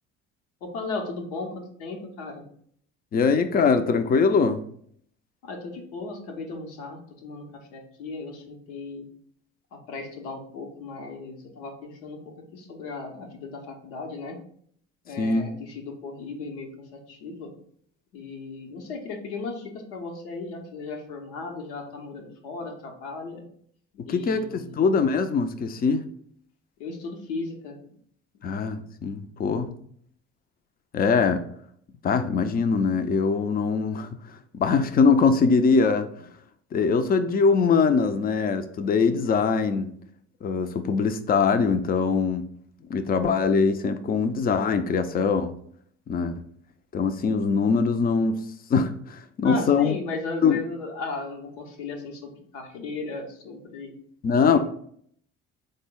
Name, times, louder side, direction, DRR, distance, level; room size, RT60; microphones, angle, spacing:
voice 1, 0.6-2.4 5.4-9.0 9.7-14.4 15.0-17.5 18.1-23.4 24.0-24.9 26.8-28.0 28.3-28.4 49.4-53.9 54.5-54.6, left 3 dB, 85° left, 2 dB, 0.8 m, -36 dB
voice 2, 3.1-4.6 15.2-15.5 24.0-26.0 28.4-29.7 30.9-31.4 32.0-34.1 34.5-36.1 36.7-39.9 40.4-42.4 42.9-45.6 46.1-46.4 46.9-48.4 48.7-49.9 50.4-50.6 54.2-54.6, left 5 dB, 30° left, 9 dB, 0.4 m, -22 dB
3.8 x 2.1 x 3.6 m, 0.63 s
hypercardioid pair, 65°, 33 cm